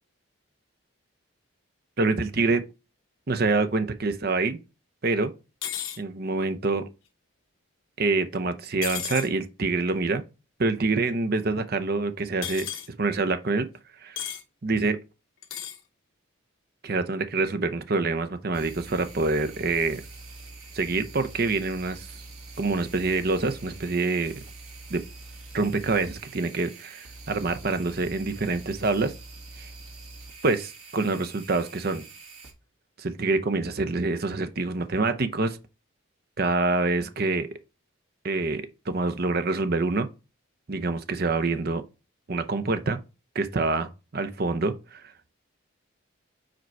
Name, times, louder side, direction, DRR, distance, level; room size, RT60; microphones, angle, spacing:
voice 1, 2.0-2.7 3.3-4.6 5.0-5.3 6.0-6.9 8.0-10.2 10.6-12.7 13.0-13.7 14.0-14.2 14.6-15.0 16.8-20.0 20.7-22.1 22.6-24.4 24.9-25.0 25.5-29.1 29.6-29.7 30.4-32.1 33.0-35.6 36.4-37.5 38.2-40.1 40.7-41.8 42.3-43.0 43.3-45.3, right 3 dB, 45° right, 0.6 m, -26 dB
sound 1, 5.6-6.0 8.8-9.3 12.4-12.9 14.2-14.4 15.4-15.8, left 10 dB, 70° left, 1.2 m, -33 dB
sound 2, 18.5-32.5, right 3 dB, 85° right, 1.8 m, -45 dB
5.0 x 4.5 x 4.5 m
head